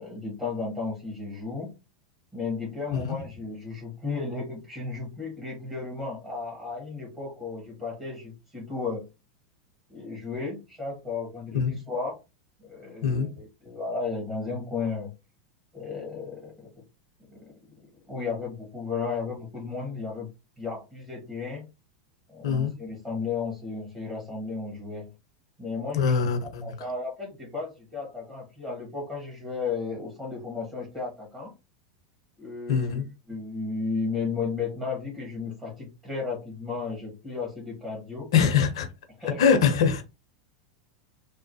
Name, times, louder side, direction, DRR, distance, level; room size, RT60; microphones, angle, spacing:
voice 1, 0.0-1.7 2.3-9.1 9.9-12.2 12.6-15.1 15.7-16.7 17.3-20.3 20.6-21.7 22.3-25.1 25.6-31.5 32.4-33.0 33.3-38.3 39.2-39.6, left 4 dB, 15° right, 1.4 m, -34 dB
voice 2, 25.9-26.7 32.7-33.0 38.3-38.9 39.4-40.0, left 6 dB, 70° left, 0.7 m, -23 dB
3.0 x 2.0 x 2.7 m
hypercardioid pair, 90°, 3 cm